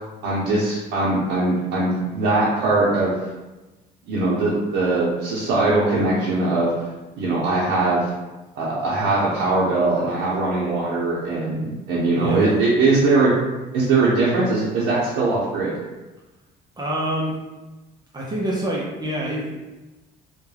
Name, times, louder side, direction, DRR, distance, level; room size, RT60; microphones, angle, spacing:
voice 1, 0.2-3.1 4.1-6.7 7.2-8.1 8.6-13.4 13.7-15.7, right 2 dB, 85° right, -7 dB, 0.6 m, -21 dB
voice 2, 12.1-12.6 16.8-17.4 18.1-19.5, right 1 dB, 25° right, -4 dB, 0.5 m, -26 dB
2.2 x 2.2 x 3.1 m, 1.1 s
cardioid pair, 110°, 17 cm